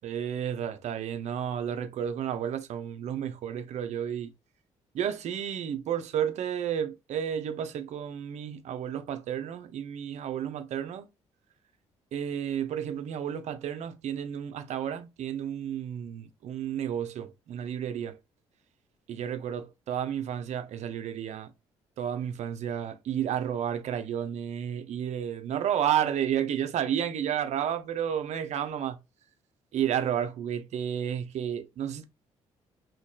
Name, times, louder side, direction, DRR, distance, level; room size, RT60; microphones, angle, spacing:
voice 1, 0.0-4.3 4.9-11.1 12.1-18.2 19.1-21.5 22.0-29.0 29.7-32.0, right 9 dB, 65° right, 0.5 m, -31 dB
2.6 x 2.2 x 2.3 m
supercardioid pair, 65°, 13 cm